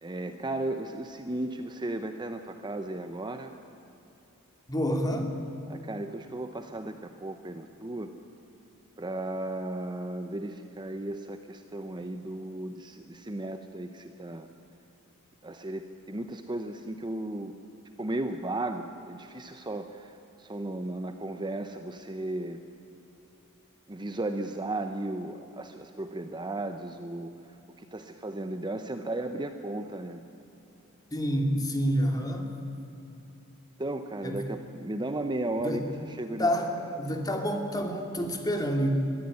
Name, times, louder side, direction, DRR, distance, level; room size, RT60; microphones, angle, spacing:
voice 1, 0.0-3.5 5.7-8.1 9.0-14.5 15.4-17.5 18.0-22.6 23.9-27.3 27.8-30.2 33.8-36.5 36.8-37.1, right 2 dB, 20° right, 7 dB, 0.8 m, -35 dB
voice 2, 4.7-5.4 31.1-32.5 34.2-34.4 35.6-35.8 36.4-36.7 37.0-38.9, equal, 20° left, 3 dB, 2.5 m, -28 dB
22.0 x 15.0 x 9.9 m, 2.9 s
head